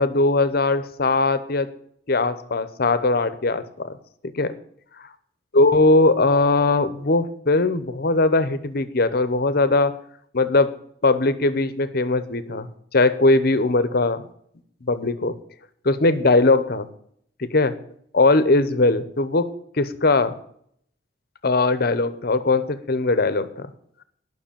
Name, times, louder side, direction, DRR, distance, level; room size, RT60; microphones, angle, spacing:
voice 1, 0.0-1.7 2.1-4.0 4.3-4.6 5.5-9.9 10.3-10.8 11.0-14.2 14.8-15.4 15.8-16.9 17.4-17.7 18.1-19.5 19.8-20.3 21.4-23.7, left 2 dB, 55° left, 13 dB, 0.9 m, -20 dB
10.0 x 6.2 x 8.8 m, 0.66 s
head